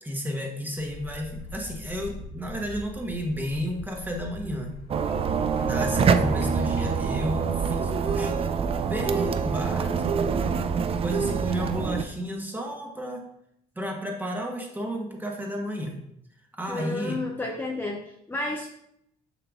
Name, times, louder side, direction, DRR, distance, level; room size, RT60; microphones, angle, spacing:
voice 1, 0.0-4.7 5.6-8.3 8.8-10.4 11.0-13.2 13.7-16.0 16.6-17.2, equal, 10° right, 1 dB, 1.2 m, -32 dB
sound 1, 0.8-8.9, left 3 dB, 75° left, 1.5 m, -43 dB
sound 2, 4.9-12.0, right 6 dB, 35° right, 0.4 m, -25 dB
voice 2, 16.7-18.7, left 2 dB, 10° left, 0 dB, 0.6 m, -31 dB
7.0 x 5.7 x 2.4 m, 0.76 s
cardioid pair, 110°, 17 cm